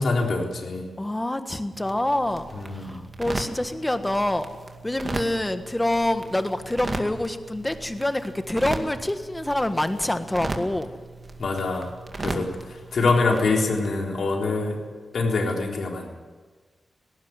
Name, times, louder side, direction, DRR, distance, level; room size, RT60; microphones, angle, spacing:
voice 1, 0.0-0.9 2.5-3.1 11.4-11.9 12.2-14.8 15.1-16.1, left 3 dB, 70° left, 1 dB, 3.9 m, -25 dB
voice 2, 1.0-4.5 4.8-10.9 12.3-12.5, left 1 dB, 10° left, 9 dB, 1.5 m, -26 dB
sound 1, 1.7-13.9, right 3 dB, 35° right, 2.2 m, -37 dB
18.5 x 17.0 x 9.6 m, 1.4 s
wide cardioid pair, 115°, 0 cm